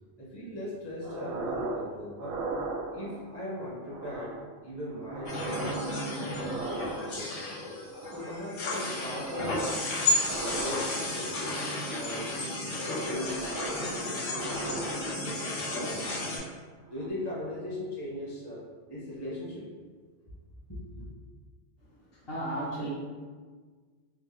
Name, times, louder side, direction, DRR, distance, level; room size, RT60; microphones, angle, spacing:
voice 1, 0.2-2.4 2.9-5.9 6.1-7.7 8.1-9.6 10.3-11.6 11.9-12.3 12.8-16.3 16.9-19.7 20.3-20.4 20.7-21.1, left 1 dB, 25° left, -6 dB, 0.7 m, -39 dB
sound 1, 1.0-1.9 2.2-3.3 3.8-4.5 4.9-7.4 7.8-8.5 8.9-9.9 10.2-11.3 11.9-12.5 12.9-15.4 15.9-16.5 16.9-17.1, right 3 dB, 60° right, 0.6 m, -39 dB
sound 2, 5.3-16.4, left 2 dB, 80° left, 1.1 m, -33 dB
voice 2, 22.1-22.9, right 1 dB, 55° left, -6 dB, 0.9 m, -34 dB
3.7 x 2.6 x 3.0 m, 1.5 s
omnidirectional pair, 1.3 m